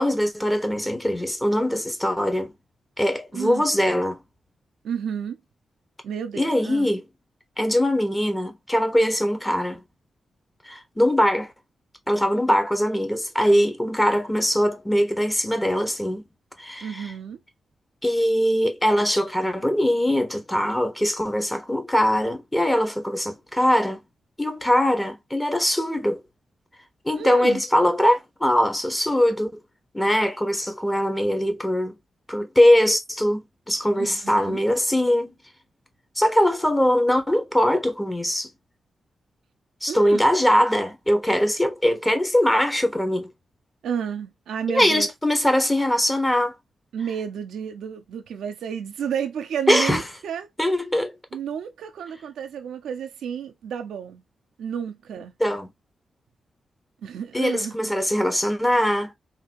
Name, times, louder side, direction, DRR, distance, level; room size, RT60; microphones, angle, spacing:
voice 1, 0.0-2.5 3.0-4.2 6.4-7.0 7.6-9.8 10.6-11.5 12.1-16.2 16.6-17.1 18.0-24.0 24.4-26.2 27.0-29.6 29.9-31.9 32.3-35.3 36.2-38.5 39.8-43.3 44.7-46.5 49.7-50.0 50.6-51.1 55.4-55.7 57.3-59.1, equal, 10° left, 1.4 m, -22 dB
voice 2, 3.3-3.6 4.8-5.4 6.0-6.9 16.8-17.4 27.1-27.6 33.9-34.6 39.9-40.3 43.8-45.1 46.9-50.5 51.3-54.2 54.6-55.3 57.0-57.9, right 8 dB, 90° right, 0.7 m, -31 dB
3.9 x 2.9 x 2.9 m
cardioid pair, 60°, 0 cm